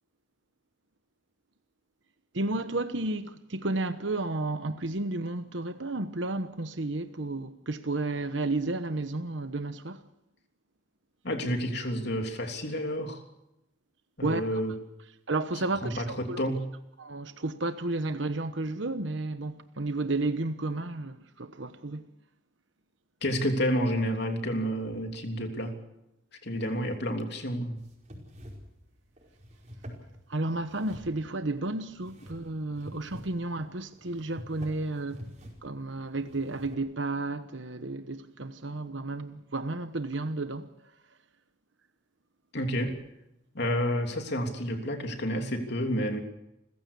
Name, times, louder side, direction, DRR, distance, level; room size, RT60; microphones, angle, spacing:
voice 1, 2.3-10.0 14.2-14.5 15.3-16.5 17.0-22.1 30.3-35.2 35.6-40.7, right 2 dB, 65° right, 1.1 m, -32 dB
voice 2, 11.2-13.2 14.2-14.7 15.8-16.7 23.2-25.8 26.4-27.8 42.5-43.0 43.5-46.2, equal, 55° left, 3.2 m, -30 dB
sound 1, 27.8-36.7, equal, 35° right, 5.2 m, -48 dB
29.0 x 15.5 x 7.0 m
head